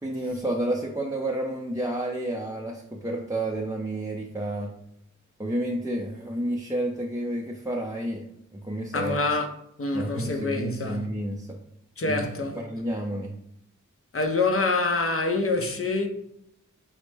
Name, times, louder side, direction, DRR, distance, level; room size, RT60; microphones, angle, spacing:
voice 1, 0.0-4.7 5.4-8.2 8.5-9.2 9.9-11.6 12.0-12.2 12.6-13.3, right 1 dB, 10° right, 0.5 m, -30 dB
voice 2, 8.9-9.5 9.8-11.1 12.0-12.6 14.1-16.1, left 3 dB, 45° left, 0.6 m, -26 dB
4.2 x 2.1 x 3.2 m
cardioid pair, 40°, 30 cm